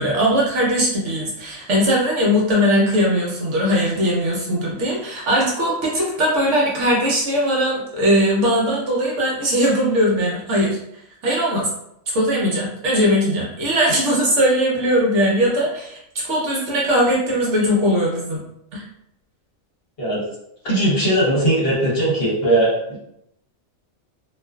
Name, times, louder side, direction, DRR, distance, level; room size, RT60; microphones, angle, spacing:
voice 1, 0.0-10.8 11.2-11.7 12.1-18.4 18.7-18.8, equal, 65° right, -3 dB, 0.9 m, -19 dB
voice 2, 20.6-23.0, right 1 dB, 50° left, -6 dB, 1.0 m, -19 dB
2.4 x 2.3 x 2.2 m, 0.77 s
omnidirectional pair, 1.4 m